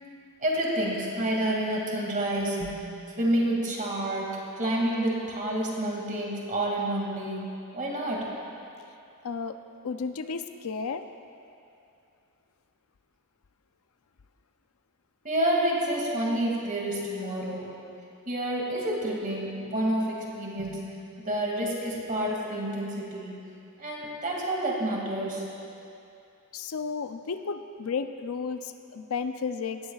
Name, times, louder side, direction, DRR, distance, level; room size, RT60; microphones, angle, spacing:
voice 1, 0.4-2.9 3.2-7.4 7.7-8.3 15.2-17.7 18.3-20.9 21.2-23.3 23.8-25.4, right 1 dB, 35° right, -2 dB, 2.3 m, -29 dB
voice 2, 9.2-9.6 9.8-11.0 26.5-29.8, left 5 dB, 70° left, 9 dB, 0.5 m, -33 dB
17.5 x 14.0 x 2.4 m, 2.6 s
head